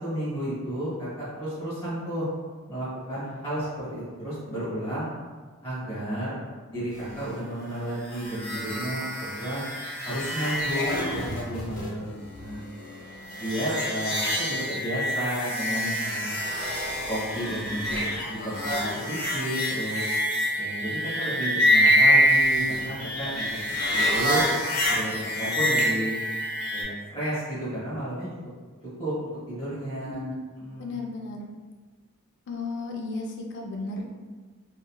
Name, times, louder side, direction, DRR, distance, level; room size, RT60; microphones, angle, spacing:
voice 1, 0.0-2.3 2.7-5.1 5.6-6.4 6.7-9.6 10.0-12.6 13.3-16.4 17.1-20.1 20.6-23.6 23.9-24.4 24.9-26.1 26.7-28.3 29.0-30.3 30.6-30.9, right 1 dB, 15° left, -11 dB, 1.1 m, -32 dB
sound 1, 8.0-26.8, equal, 80° left, 1.0 m, -26 dB
voice 2, 30.0-30.4 30.8-31.5 32.5-34.0, left 3 dB, 55° left, 0 dB, 0.4 m, -34 dB
2.8 x 2.5 x 2.3 m, 1.4 s
head